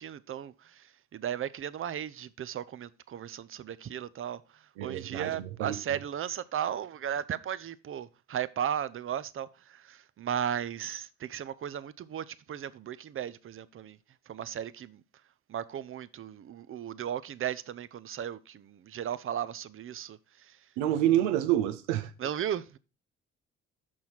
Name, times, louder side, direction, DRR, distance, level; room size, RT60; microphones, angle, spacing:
voice 1, 0.0-14.0 14.3-15.0 15.5-20.7 22.2-22.8, right 9 dB, 40° right, 0.6 m, -36 dB
voice 2, 4.8-5.8 20.8-22.1, right 12 dB, 85° right, 0.7 m, -28 dB
6.2 x 5.7 x 4.4 m
hypercardioid pair, 55°, 32 cm